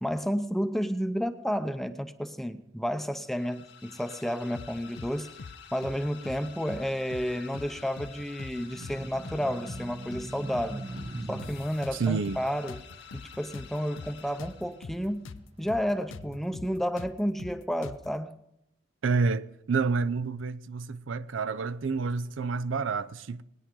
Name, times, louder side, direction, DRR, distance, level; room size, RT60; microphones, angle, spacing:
voice 1, 0.0-5.3 5.7-10.9 11.3-12.8 13.1-15.3 15.6-18.4, equal, ahead, 0.6 m, -31 dB
sound 1, 3.2-15.1, left 8 dB, 70° left, 1.8 m, -50 dB
sound 2, 4.5-5.1 5.4-5.6 5.8-6.8 7.1-7.3 7.5-8.6 8.8-9.0 9.2-10.3 10.5-10.7 11.0-12.4 12.7-15.4 15.7-15.8 16.1-18.1, left 4 dB, 85° left, 0.5 m, -43 dB
sound 3, 8.5-14.1 14.6-16.5, right 2 dB, 30° right, 0.7 m, -43 dB
voice 2, 11.9-12.4 19.0-23.4, right 4 dB, 85° right, 0.5 m, -29 dB
19.5 x 10.0 x 3.8 m
head